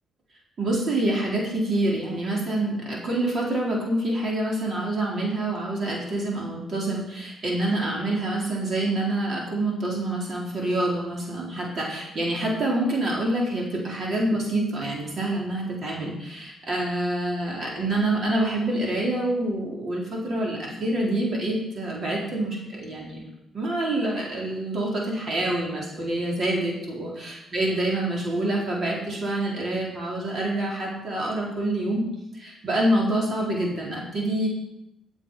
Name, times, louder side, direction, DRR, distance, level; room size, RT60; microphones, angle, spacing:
voice 1, 0.6-23.2 23.5-32.0 32.3-34.5, right 1 dB, 50° right, -3 dB, 4.3 m, -26 dB
16.0 x 7.3 x 5.7 m, 0.88 s
cardioid pair, 90°, 0 cm